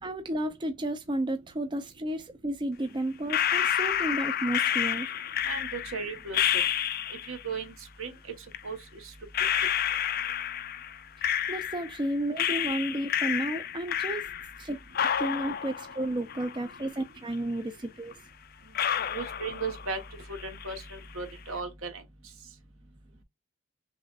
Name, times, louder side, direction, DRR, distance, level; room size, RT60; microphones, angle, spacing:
voice 1, 0.0-5.1 11.5-14.3 14.6-14.8 15.2-18.2, right 1 dB, 20° right, 0.4 m, -32 dB
sound 1, 3.3-7.4 8.5-8.6 9.3-12.0 12.4-14.6 14.9-17.0 17.3-17.4 18.1-18.2 18.7-20.1 20.3-20.9, left 10 dB, 45° left, 0.4 m, -29 dB
voice 2, 5.5-6.6 7.3-8.2 8.6-9.1 19.1-20.0 20.3-22.0, right 4 dB, 70° right, 1.3 m, -36 dB
6.1 x 2.5 x 2.4 m
head